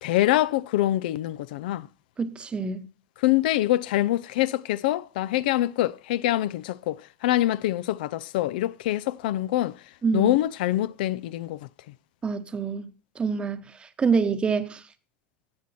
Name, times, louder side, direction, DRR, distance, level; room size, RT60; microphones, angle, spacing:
voice 1, 0.0-1.9 3.2-9.8 10.1-11.6, left 15 dB, 80° left, 0.4 m, -25 dB
voice 2, 2.2-2.9 10.0-10.4 12.2-12.9 13.2-14.8, right 5 dB, 20° right, 0.9 m, -26 dB
16.0 x 6.3 x 4.1 m
supercardioid pair, 120°, 5 cm